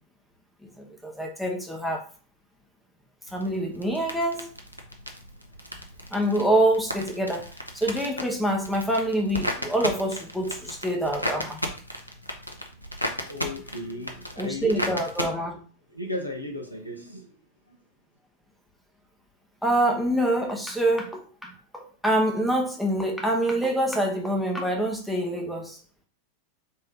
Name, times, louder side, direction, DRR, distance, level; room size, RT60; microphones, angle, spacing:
voice 1, 0.8-2.0 3.3-4.5 6.1-7.5 7.7-11.6 14.4-15.6 19.6-25.8, right 1 dB, ahead, 1.1 m, -26 dB
sound 1, 3.3-15.3, equal, 90° right, 0.7 m, -35 dB
voice 2, 13.3-14.8 15.9-17.3 17.7-17.8, left 1 dB, 90° left, 1.1 m, -35 dB
4.4 x 3.3 x 3.7 m
figure-of-eight pair, 90°, 0 cm